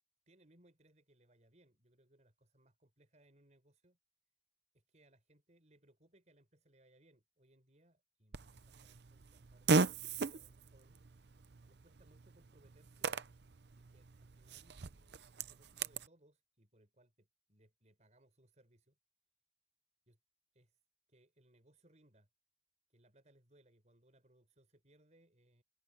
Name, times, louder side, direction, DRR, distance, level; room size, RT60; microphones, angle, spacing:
voice 1, 0.3-4.0 4.7-11.0 11.7-13.2 13.7-19.0 20.1-20.2 20.5-20.8 21.1-22.3 22.9-25.6, right 1 dB, 40° right, 5.9 m, -69 dB
Fart, 8.3-16.1, right 4 dB, 65° right, 0.7 m, -38 dB
head